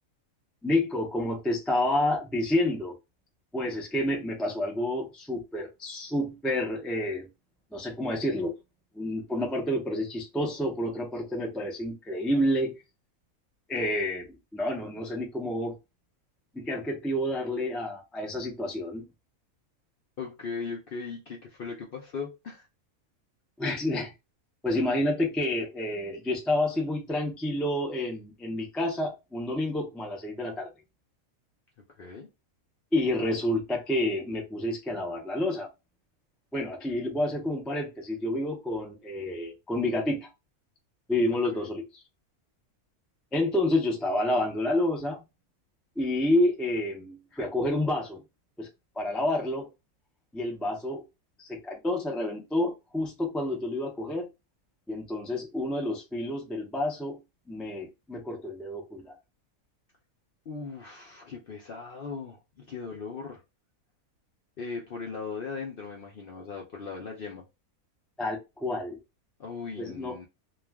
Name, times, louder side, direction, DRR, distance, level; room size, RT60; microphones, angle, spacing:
voice 1, 0.6-2.9 3.5-7.3 7.7-8.5 8.9-12.8 13.7-15.8 16.5-19.0 23.6-24.1 24.6-30.7 32.9-35.7 36.5-40.3 41.1-41.8 43.3-45.2 46.0-48.2 48.6-48.7 49.0-49.7 50.3-51.0 51.4-54.3 54.9-57.2 57.5-59.2 68.2-69.0 69.8-70.1, left 1 dB, ahead, 0.3 m, -29 dB
voice 2, 20.2-22.7 32.0-32.3 41.5-41.7 60.5-63.4 64.6-67.5 69.4-70.3, left 5 dB, 60° left, 0.6 m, -38 dB
2.4 x 2.3 x 3.3 m
omnidirectional pair, 1.5 m